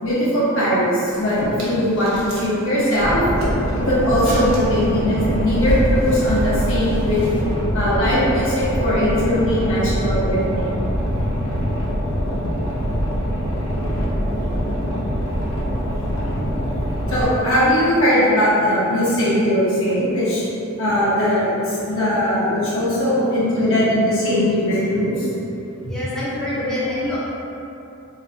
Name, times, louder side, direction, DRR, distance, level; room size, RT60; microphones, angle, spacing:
voice 1, 0.0-3.2 3.7-7.3 7.7-10.7 11.1-11.2 11.5-11.6 12.8-12.9 14.3-14.5 17.1-20.4 20.8-25.3 25.8-25.9, equal, 65° left, -9 dB, 1.0 m, -20 dB
sound 1, 1.1-2.5 2.8-7.4, equal, 80° right, 0.9 m, -29 dB
Boat Water vehicle, 3.0-17.2, equal, 90° left, 0.7 m, -24 dB
voice 2, 25.9-27.2, left 1 dB, 5° left, -11 dB, 0.6 m, -25 dB
3.0 x 2.2 x 3.9 m, 2.9 s
head